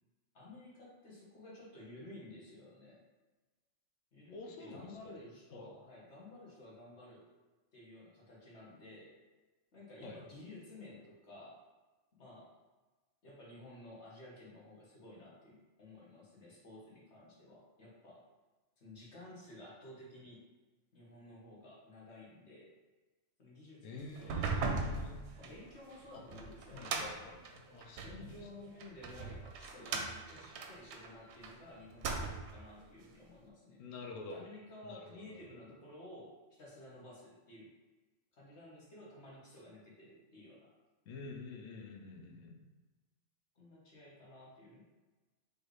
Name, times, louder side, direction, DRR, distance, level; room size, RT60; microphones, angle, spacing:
voice 1, 0.3-3.0 4.1-7.3 7.7-9.2 9.7-11.6 12.2-12.6 13.2-18.2 18.8-20.4 20.9-22.7 23.4-27.0 28.0-33.8 34.3-37.7 38.3-40.7 43.5-44.8, left 1 dB, 65° left, -5 dB, 1.5 m, -53 dB
voice 2, 4.3-5.2 5.5-5.7 10.0-10.2 23.8-25.2 26.1-26.2 26.7-28.5 33.8-34.4 34.8-35.5 41.1-42.7, left 3 dB, 90° left, 2 dB, 1.0 m, -48 dB
sound 1, 24.2-28.2 28.8-31.5 31.9-32.6, right 4 dB, 70° right, 0.8 m, -39 dB
4.4 x 3.3 x 3.1 m, 1.2 s
omnidirectional pair, 1.3 m